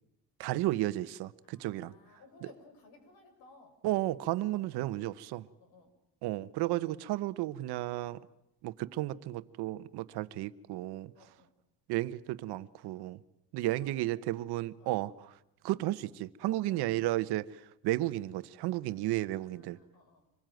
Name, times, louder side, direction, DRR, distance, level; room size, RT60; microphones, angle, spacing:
voice 1, 0.4-1.9 2.4-2.5 3.8-5.5 6.2-8.2 8.6-11.1 11.9-13.2 13.5-15.3 15.6-19.8, right 16 dB, 85° right, 1.1 m, -33 dB
voice 2, 1.4-3.7 4.4-4.7 5.6-5.9 11.1-11.5 13.5-14.2 14.8-15.0 16.5-17.1 19.0-20.3, left 4 dB, 75° left, 6.9 m, -59 dB
26.0 x 21.5 x 9.3 m
cardioid pair, 160°, 38 cm